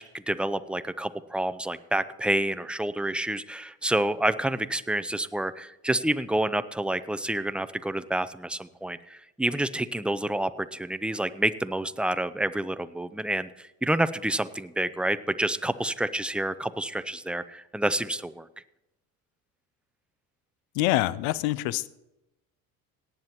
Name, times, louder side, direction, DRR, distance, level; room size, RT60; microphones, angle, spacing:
voice 1, 0.0-18.5, right 1 dB, 5° right, 12 dB, 0.4 m, -28 dB
voice 2, 20.7-21.9, left 16 dB, 70° left, 18 dB, 0.7 m, -25 dB
18.0 x 9.5 x 3.0 m, 0.88 s
hypercardioid pair, 70°, 45 cm